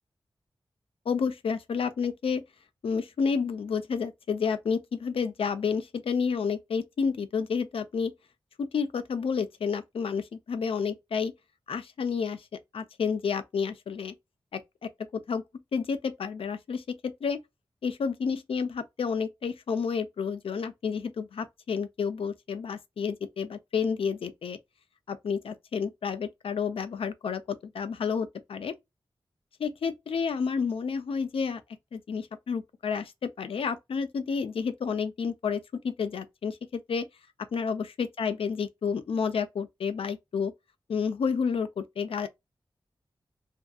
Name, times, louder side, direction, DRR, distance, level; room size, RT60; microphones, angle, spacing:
voice 1, 1.1-2.4 2.8-8.1 8.6-11.3 11.7-12.5 12.7-14.1 14.5-14.6 15.1-15.4 15.7-17.4 17.8-24.6 25.1-28.8 29.6-31.6 31.9-36.6 36.9-37.1 37.5-40.5 40.9-42.3, left 6 dB, 90° left, 0.4 m, -30 dB
2.6 x 2.4 x 2.2 m
wide cardioid pair, 80°, 9 cm